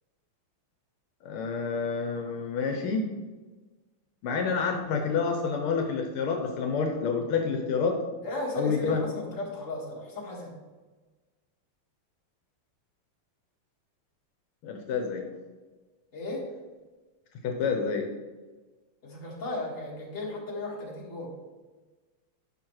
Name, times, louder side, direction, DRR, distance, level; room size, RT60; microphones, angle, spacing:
voice 1, 1.2-3.1 4.2-8.0 8.5-9.0 14.6-15.2 17.4-18.1, left 5 dB, 80° left, 3 dB, 1.7 m, -28 dB
voice 2, 8.2-10.5 16.1-16.5 19.0-21.3, left 2 dB, 35° left, -4 dB, 2.1 m, -35 dB
10.5 x 5.8 x 3.1 m, 1.3 s
omnidirectional pair, 2.4 m